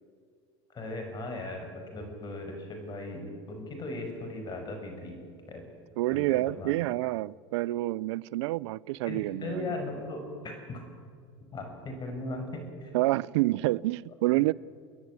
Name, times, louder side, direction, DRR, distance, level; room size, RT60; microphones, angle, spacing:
voice 1, 0.7-5.2 5.5-5.7 6.1-6.7 9.0-10.8 11.5-12.9, left 2 dB, 30° left, 5.9 m, -38 dB
voice 2, 6.0-9.7 12.9-14.5, right 18 dB, 75° right, 0.5 m, -28 dB
29.0 x 10.5 x 9.5 m
supercardioid pair, 115°, 15 cm